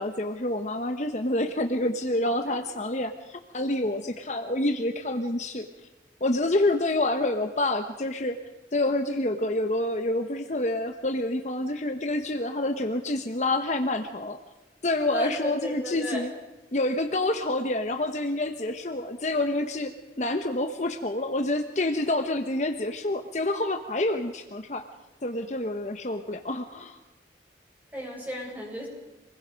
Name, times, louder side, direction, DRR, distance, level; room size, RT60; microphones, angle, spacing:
voice 1, 0.0-5.7 6.2-8.4 8.7-14.4 14.8-16.3 16.7-24.9 25.2-27.0, left 1 dB, 40° left, 6 dB, 1.1 m, -28 dB
voice 2, 15.1-16.3 27.9-28.9, equal, 10° right, -2 dB, 7.2 m, -34 dB
27.0 x 20.5 x 5.2 m, 1.0 s
head